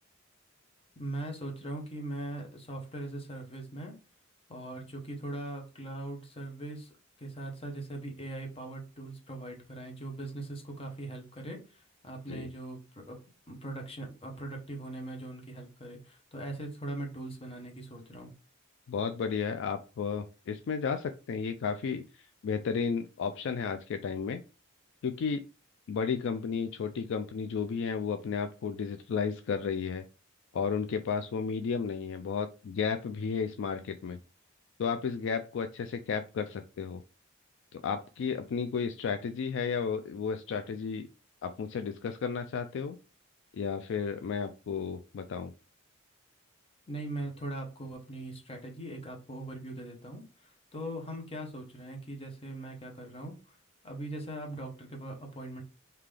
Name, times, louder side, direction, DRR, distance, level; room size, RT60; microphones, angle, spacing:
voice 1, 1.0-4.0 4.5-6.9 7.2-13.2 13.5-18.3 46.9-53.6 53.8-55.6, right 1 dB, 30° left, 2 dB, 1.0 m, -40 dB
voice 2, 18.9-24.4 25.0-25.4 25.9-30.1 30.5-34.2 34.8-37.0 37.7-41.1 41.4-43.0 43.5-45.5, left 6 dB, 65° left, 8 dB, 0.3 m, -33 dB
3.7 x 2.8 x 3.2 m, 0.32 s
head